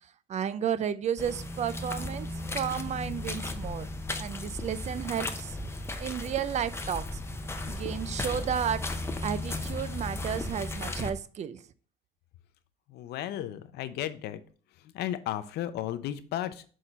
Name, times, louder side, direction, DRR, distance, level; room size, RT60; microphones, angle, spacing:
voice 1, 0.3-3.9 4.2-5.6 6.0-7.1 7.7-8.9 9.2-11.6, right 8 dB, 45° right, 0.4 m, -32 dB
sound 1, 1.2-11.1, left 2 dB, 15° left, 0.6 m, -35 dB
voice 2, 12.9-14.4 14.8-16.6, left 12 dB, 75° left, 0.6 m, -34 dB
6.3 x 3.7 x 4.0 m
cardioid pair, 110°, 17 cm